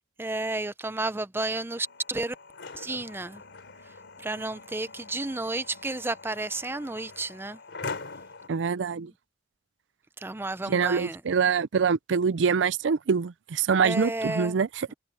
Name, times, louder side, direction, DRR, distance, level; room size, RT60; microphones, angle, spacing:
voice 1, 0.2-2.3 2.7-3.4 4.2-7.6 9.0-9.1 10.2-11.2 13.8-14.6 14.9-15.0, right 2 dB, 10° right, 0.6 m, -32 dB
sound 1, 1.7-8.5, left 4 dB, 70° left, 4.0 m, -43 dB
voice 2, 8.5-9.1 10.7-14.9, right 6 dB, 75° right, 0.5 m, -25 dB
head